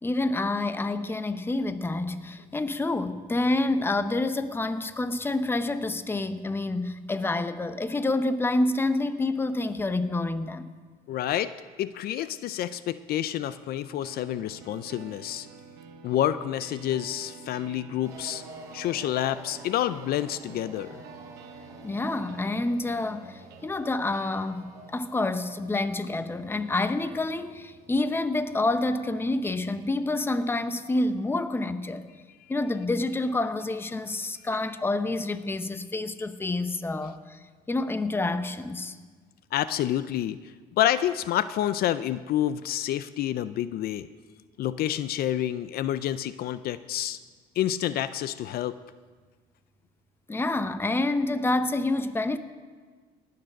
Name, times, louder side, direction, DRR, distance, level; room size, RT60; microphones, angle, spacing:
voice 1, 0.0-10.6 21.8-32.1 32.5-37.4 37.7-39.0 50.3-52.4, left 2 dB, 15° left, 0.7 m, -28 dB
voice 2, 11.1-15.5 16.0-18.4 18.7-21.0 39.5-40.4 40.8-44.1 44.6-47.2 47.6-48.7, left 12 dB, 65° left, 0.4 m, -28 dB
sound 1, 14.0-28.0, right 5 dB, 80° right, 1.2 m, -50 dB
sound 2, 18.0-29.6, right 2 dB, 20° right, 2.4 m, -50 dB
19.0 x 6.7 x 6.5 m
cardioid pair, 110°, 17 cm